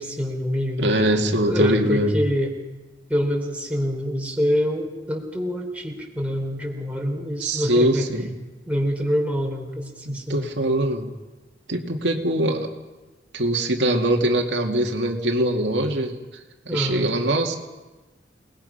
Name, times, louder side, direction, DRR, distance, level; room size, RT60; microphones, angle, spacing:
voice 1, 0.0-1.0 1.5-2.5 3.1-8.1 8.7-10.5 16.7-17.1, equal, 10° right, 0 dB, 3.6 m, -26 dB
voice 2, 0.8-2.1 7.4-8.4 10.3-11.1 11.7-12.7 13.3-16.2 16.7-17.6, right 1 dB, 75° right, 2 dB, 2.3 m, -22 dB
28.5 x 20.0 x 5.7 m, 1.1 s
head